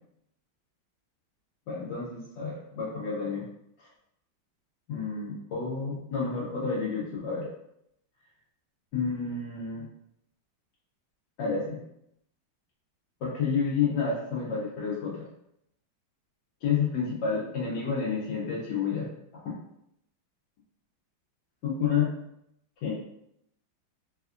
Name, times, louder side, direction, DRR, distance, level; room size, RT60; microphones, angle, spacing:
voice 1, 1.7-3.5 3.8-3.9 4.9-7.5 8.9-9.9 11.4-11.8 13.2-15.3 16.6-19.1 19.3-19.5 21.6-22.1 22.8-22.9, left 5 dB, 70° left, -6 dB, 1.1 m, -30 dB
3.5 x 2.2 x 2.4 m, 0.77 s
omnidirectional pair, 2.3 m